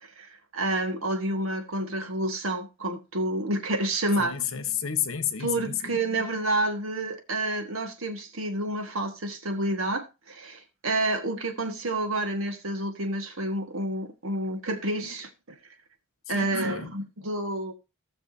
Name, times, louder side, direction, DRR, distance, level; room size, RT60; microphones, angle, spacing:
voice 1, 0.5-4.4 5.4-15.3 16.3-17.7, right 1 dB, 70° right, 1.8 m, -29 dB
voice 2, 4.2-6.0 16.3-16.9, left 9 dB, 70° left, 1.2 m, -31 dB
18.0 x 6.2 x 2.8 m
head